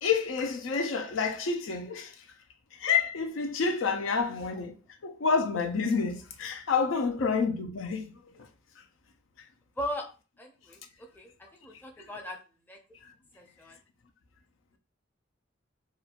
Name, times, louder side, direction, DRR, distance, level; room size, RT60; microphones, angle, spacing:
voice 1, 0.0-2.1 2.8-4.7 5.0-8.1, left 5 dB, 90° left, 0.5 m, -28 dB
voice 2, 10.4-10.8 11.2-11.3 11.6-12.4 12.7-12.8 13.4-13.7, left 1 dB, 10° left, 0.5 m, -37 dB
2.9 x 2.3 x 2.4 m
head